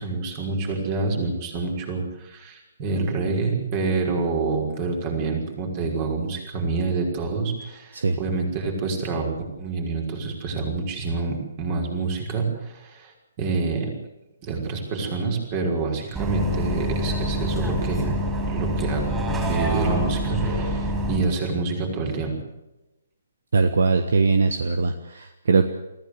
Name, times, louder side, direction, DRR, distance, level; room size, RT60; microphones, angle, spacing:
voice 1, 0.0-13.1 13.4-13.9 14.4-18.1 18.5-19.1 19.4-22.4, right 4 dB, 30° right, 1 dB, 5.6 m, -27 dB
Bus, 16.2-21.2, equal, 10° right, 5.1 m, -26 dB
voice 2, 23.5-25.7, right 4 dB, 60° right, 9 dB, 1.4 m, -21 dB
24.0 x 15.5 x 8.2 m, 0.98 s
figure-of-eight pair, 130°, 0 cm